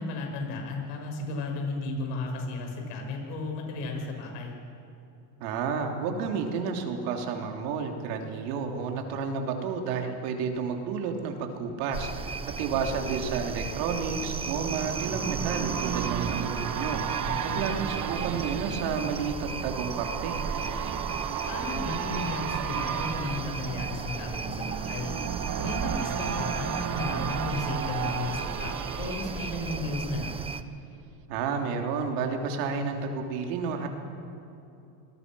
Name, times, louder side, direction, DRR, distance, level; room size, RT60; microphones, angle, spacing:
voice 1, 0.0-4.5 17.2-17.6 21.5-25.1 25.6-30.3, left 2 dB, 75° left, 2 dB, 6.4 m, -34 dB
voice 2, 5.4-17.0 17.5-20.4 31.3-33.9, right 5 dB, 75° right, 3 dB, 3.3 m, -31 dB
sound 1, 11.9-30.6, right 4 dB, 10° right, 0.7 m, -36 dB
sound 2, 13.4-30.5 30.9-31.0, right 9 dB, 40° right, 1.2 m, -34 dB
26.5 x 20.5 x 6.3 m, 2.8 s
supercardioid pair, 130°, 48 cm